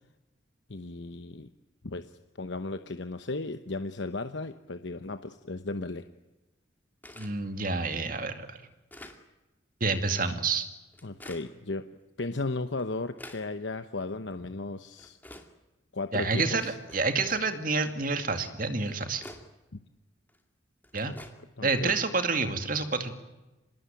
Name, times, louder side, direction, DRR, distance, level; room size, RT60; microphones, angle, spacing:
voice 1, 0.7-1.5 1.8-2.1 2.4-6.0 11.0-11.9 12.2-15.2 15.9-16.7 19.7-19.8 21.0-21.2 21.6-21.9, left 3 dB, 70° left, 9 dB, 1.0 m, -35 dB
sound 1, 7.0-7.4 8.0-8.1 8.6-9.2 10.1-10.3 10.9-11.5 12.3-12.4 12.8-13.4 14.3-14.4 15.0-15.5 16.2-16.3 16.9-17.4 18.4-18.5 18.9-19.4 20.3-20.4 20.8-21.3, left 1 dB, 10° left, 2.4 m, -47 dB
voice 2, 7.2-8.6 9.8-10.7 16.1-19.2 20.9-21.1 21.6-23.1, right 4 dB, 45° right, 7 dB, 2.4 m, -28 dB
26.0 x 20.0 x 9.1 m, 1.1 s
head